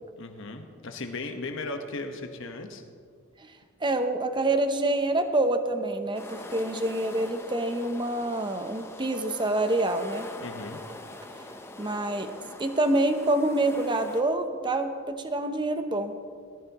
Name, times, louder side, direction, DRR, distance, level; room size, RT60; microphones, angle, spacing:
voice 1, 0.2-2.8 10.4-10.8, left 3 dB, 60° left, 5 dB, 1.2 m, -36 dB
voice 2, 3.8-10.3 11.8-12.3 12.6-16.1, right 2 dB, 20° right, 8 dB, 0.8 m, -26 dB
sound 1, 6.1-14.2, left 1 dB, 10° left, 0.8 m, -43 dB
18.0 x 14.0 x 3.0 m, 2.1 s
head